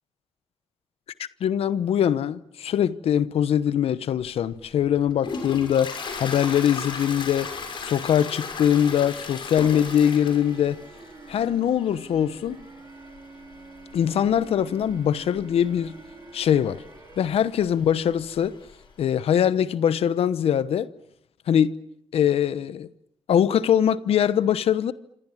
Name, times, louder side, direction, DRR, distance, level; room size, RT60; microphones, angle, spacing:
voice 1, 1.4-7.5 7.8-10.8 11.3-12.6 13.9-16.0 16.3-16.8 17.2-18.5 19.0-20.9 21.5-21.7 22.1-22.9 23.3-24.9, left 9 dB, 80° left, 1.0 m, -22 dB
Toilet flush, 4.2-18.9, left 4 dB, 55° left, 6.3 m, -38 dB
sound 1, 9.7-17.2, right 3 dB, 35° right, 3.1 m, -47 dB
27.0 x 27.0 x 7.5 m
wide cardioid pair, 155°, 10 cm